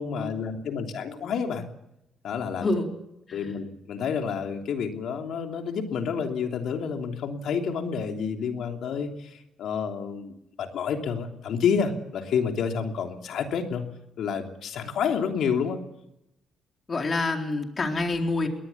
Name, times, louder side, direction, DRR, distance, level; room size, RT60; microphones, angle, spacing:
voice 1, 0.0-1.7 2.2-2.7 3.3-13.8 14.2-15.8, left 6 dB, 70° left, 4 dB, 3.1 m, -29 dB
voice 2, 16.9-18.5, left 2 dB, 35° left, 3 dB, 4.1 m, -27 dB
22.5 x 18.5 x 7.2 m, 0.85 s
cardioid pair, 90°, 0 cm